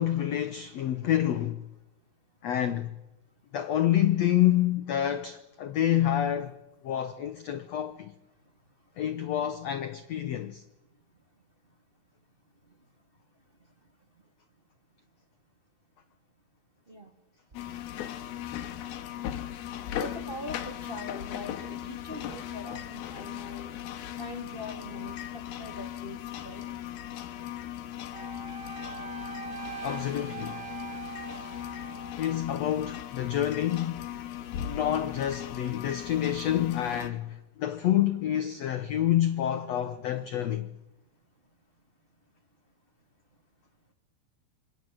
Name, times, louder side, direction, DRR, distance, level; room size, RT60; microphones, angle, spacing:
voice 1, 0.0-1.6 2.4-2.9 3.5-6.6 6.8-8.1 9.0-10.6 29.8-30.6 32.2-34.1 34.6-40.7, left 11 dB, 65° left, 1.7 m, -28 dB
sound 1, 17.5-37.1, left 11 dB, 80° left, 3.3 m, -38 dB
voice 2, 19.9-23.7 24.2-26.2 26.4-26.6, left 1 dB, 15° right, 2.5 m, -42 dB
Wind instrument woodwind instrument, 28.1-32.4, right 7 dB, 65° right, 2.8 m, -42 dB
27.0 x 25.5 x 7.9 m
omnidirectional pair, 4.4 m